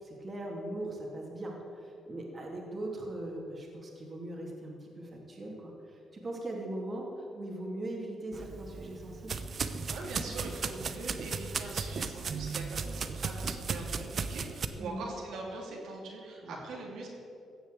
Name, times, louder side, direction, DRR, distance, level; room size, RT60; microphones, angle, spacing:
voice 1, 0.0-9.4 14.8-15.1 16.4-16.6, right 1 dB, 35° right, -1 dB, 3.0 m, -40 dB
sound 1, 8.3-14.7, right 5 dB, 50° right, 0.8 m, -36 dB
voice 2, 9.8-17.1, right 2 dB, 80° right, -2 dB, 2.9 m, -42 dB
15.5 x 7.1 x 8.0 m, 2.7 s
cardioid pair, 95°, 0 cm